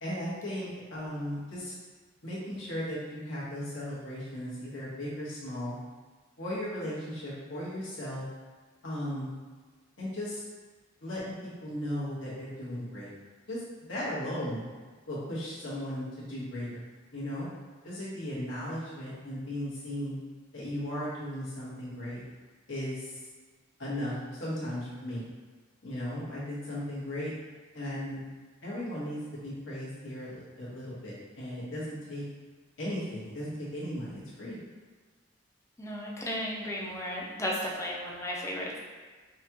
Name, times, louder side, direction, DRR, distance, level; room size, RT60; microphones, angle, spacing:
voice 1, 0.0-1.7 2.2-5.8 6.4-8.2 8.8-9.3 10.0-10.4 11.0-11.3 11.6-13.1 13.5-14.6 15.1-16.8 17.1-17.5 17.8-20.2 20.5-22.2 22.7-23.2 23.8-25.3 25.8-27.3 27.7-28.2 28.6-32.2 32.8-34.6, equal, 70° left, -8 dB, 1.4 m, -36 dB
voice 2, 35.8-38.8, equal, 15° left, -4 dB, 0.6 m, -34 dB
5.4 x 2.4 x 3.0 m, 1.4 s
head